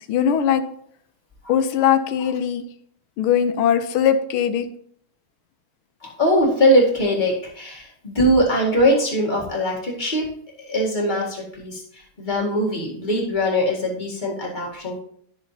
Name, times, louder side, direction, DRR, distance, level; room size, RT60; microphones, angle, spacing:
voice 1, 0.1-0.6 1.5-2.6 3.2-4.7, left 8 dB, 80° left, 10 dB, 1.5 m, -20 dB
voice 2, 6.0-10.2 10.7-15.0, equal, 25° left, -3 dB, 1.9 m, -21 dB
10.5 x 6.2 x 2.7 m, 0.63 s
omnidirectional pair, 2.3 m